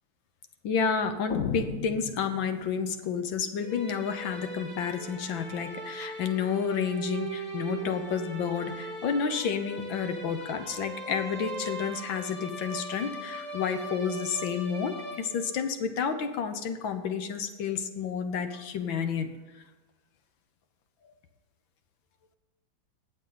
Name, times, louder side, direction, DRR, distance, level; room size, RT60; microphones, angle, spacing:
voice 1, 0.6-19.6 21.1-21.2, left 6 dB, 75° left, 8 dB, 1.8 m, -30 dB
sound 1, 1.3-2.9, left 7 dB, 55° left, 1.0 m, -35 dB
sound 2, 3.6-15.7, right 1 dB, 5° left, 2.5 m, -40 dB
19.5 x 7.2 x 4.0 m, 1.3 s
omnidirectional pair, 2.2 m